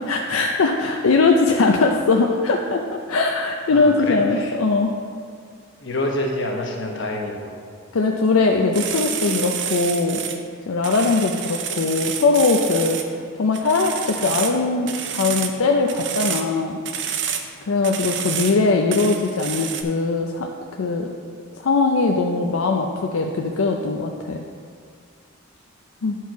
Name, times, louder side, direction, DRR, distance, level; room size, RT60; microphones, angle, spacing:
voice 1, 0.1-4.9 7.9-10.2 10.7-13.0 13.4-16.8 17.7-20.5 20.8-21.1 21.6-24.4 26.0-26.2, left 3 dB, 85° left, 2 dB, 0.5 m, -20 dB
voice 2, 3.7-4.5 5.8-7.5 9.2-9.4, left 1 dB, 60° left, 1 dB, 1.1 m, -27 dB
sound 1, 8.7-10.4 10.8-13.0 13.5-14.6 14.9-15.6 15.9-16.4 16.8-17.4 17.8-18.6 18.9-19.8, right 8 dB, 55° right, 0.6 m, -28 dB
10.5 x 4.6 x 4.6 m, 2.1 s
head